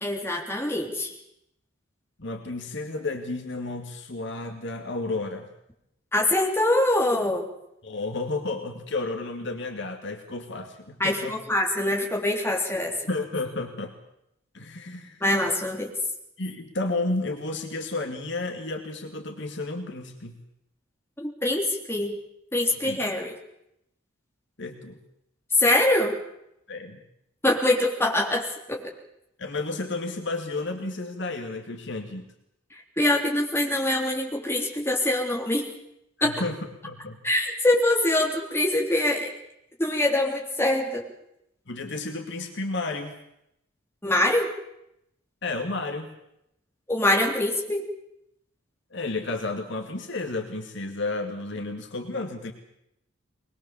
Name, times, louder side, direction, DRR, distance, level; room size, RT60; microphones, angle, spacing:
voice 1, 0.0-1.1 6.1-7.4 11.0-13.0 15.2-15.9 21.2-22.2 22.5-23.3 25.5-26.2 27.4-28.8 32.7-35.7 36.2-36.3 37.2-39.3 39.8-41.0 44.0-44.5 46.9-47.8, left 1 dB, 10° left, 0 dB, 3.5 m, -24 dB
voice 2, 2.2-5.5 7.8-11.4 12.9-13.9 14.5-15.2 16.4-20.4 22.7-23.0 24.6-25.0 26.7-27.0 29.4-32.3 36.2-37.2 41.7-43.2 45.4-46.2 48.9-52.5, left 2 dB, 55° left, 4 dB, 2.4 m, -32 dB
22.5 x 21.0 x 7.2 m, 0.80 s
head